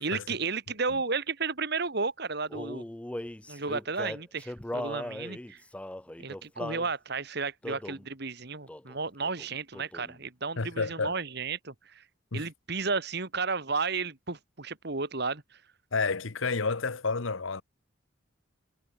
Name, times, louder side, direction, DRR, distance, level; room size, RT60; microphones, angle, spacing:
voice 1, 0.0-2.8 3.5-5.6 6.2-12.0 12.3-15.6, right 4 dB, 55° right, 1.9 m, -33 dB
Male singing, 2.5-6.9 7.6-8.1 8.7-9.0 9.2-10.2, left 1 dB, 5° left, 0.3 m, -39 dB
voice 2, 10.6-11.2 12.3-12.4 15.9-17.6, left 4 dB, 75° left, 1.1 m, -30 dB
head